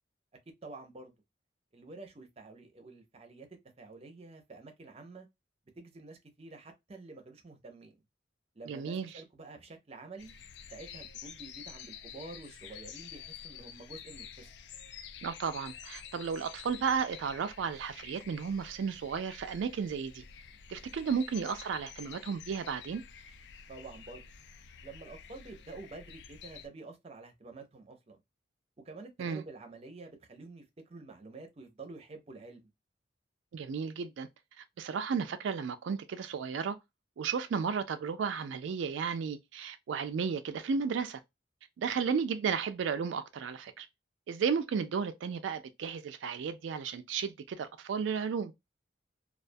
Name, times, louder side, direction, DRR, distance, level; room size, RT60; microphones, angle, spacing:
voice 1, 0.6-1.1 1.7-3.5 3.8-5.3 5.8-7.9 8.5-10.3 10.7-14.5 20.8-20.9 23.7-24.3 24.8-28.2 28.8-32.7 41.8-42.0, right 3 dB, 35° right, 0.6 m, -49 dB
voice 2, 8.7-9.1 15.2-20.2 20.7-23.0 29.2-29.4 33.5-34.3 34.6-36.8 37.2-41.2 41.8-43.9 44.3-48.5, right 6 dB, 85° right, 0.3 m, -33 dB
sound 1, 10.2-26.7, left 7 dB, 65° left, 0.3 m, -49 dB
2.3 x 2.2 x 2.5 m
head